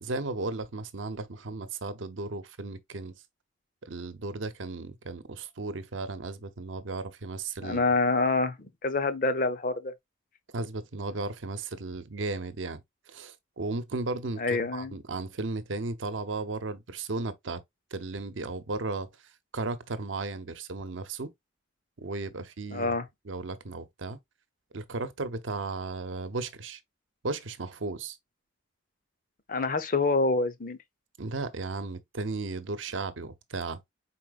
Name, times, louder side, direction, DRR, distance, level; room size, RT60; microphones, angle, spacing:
voice 1, 0.0-3.2 3.8-7.8 10.5-12.8 13.1-17.6 17.9-19.1 19.5-21.3 22.0-23.0 23.2-24.2 24.7-26.8 27.2-28.2 31.2-33.8, right 3 dB, 85° right, 0.8 m, -35 dB
voice 2, 7.6-9.9 14.4-14.9 22.7-23.1 29.5-30.8, left 3 dB, 45° left, 0.7 m, -26 dB
4.9 x 4.2 x 2.4 m
head